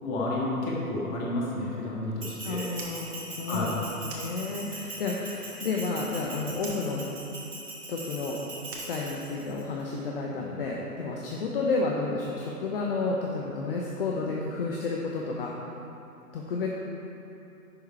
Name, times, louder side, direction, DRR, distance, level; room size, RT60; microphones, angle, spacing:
voice 1, 0.0-2.7 3.5-3.7, left 2 dB, 20° left, -4 dB, 1.7 m, -31 dB
Bell, 2.2-9.6, right 2 dB, 85° right, 1.9 m, -41 dB
voice 2, 2.4-7.1 7.9-8.4 8.7-15.5 16.3-16.7, left 3 dB, 35° left, -2 dB, 0.9 m, -31 dB
Fire, 2.7-4.9 5.2-6.2 6.5-9.7, right 3 dB, 40° right, 1.7 m, -46 dB
10.5 x 7.2 x 4.6 m, 2.8 s
figure-of-eight pair, 125°, 46 cm